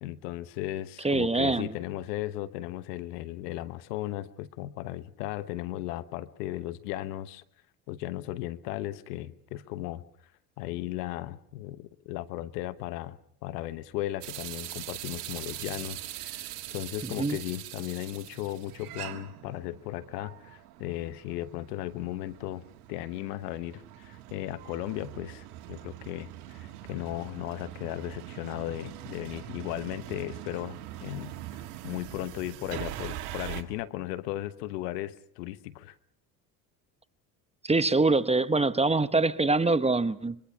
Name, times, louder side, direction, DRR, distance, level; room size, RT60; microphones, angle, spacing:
voice 1, 0.0-7.4 7.9-10.0 10.6-22.6 22.9-31.3 31.8-35.9, left 15 dB, 85° left, 1.1 m, -36 dB
voice 2, 1.0-1.7 17.0-17.4 37.6-40.4, right 3 dB, 15° right, 1.0 m, -24 dB
sound 1, 14.2-33.6, right 14 dB, 85° right, 1.9 m, -42 dB
24.5 x 23.5 x 5.8 m
supercardioid pair, 75°, 46 cm